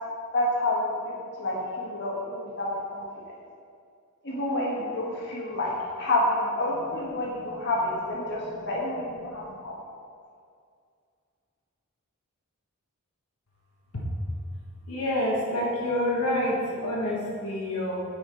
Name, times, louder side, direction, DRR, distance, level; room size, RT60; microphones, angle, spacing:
voice 1, 0.3-3.0 4.2-9.8, left 1 dB, 55° left, -4 dB, 1.7 m, -29 dB
voice 2, 7.2-7.7 8.2-8.7 9.1-9.6 13.9-14.0 14.9-18.0, left 1 dB, 80° left, -5 dB, 1.5 m, -29 dB
8.1 x 5.0 x 5.2 m, 2.2 s
head